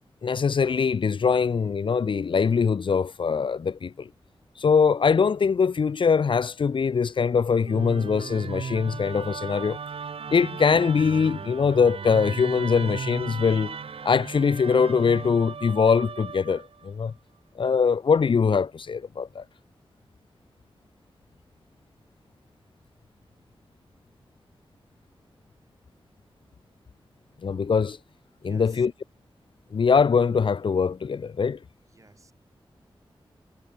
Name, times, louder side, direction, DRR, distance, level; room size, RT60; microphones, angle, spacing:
voice 1, 0.2-4.1 4.6-9.8 10.3-13.8 14.0-17.1 17.6-19.4 27.4-28.0 28.4-28.9 29.7-31.6, left 5 dB, 60° left, 0.8 m, -22 dB
Musical instrument, 7.7-16.9, right 6 dB, 85° right, 3.2 m, -36 dB
voice 2, 28.4-28.9 31.9-32.3, right 3 dB, 35° right, 6.8 m, -54 dB
wide cardioid pair, 135°, 9 cm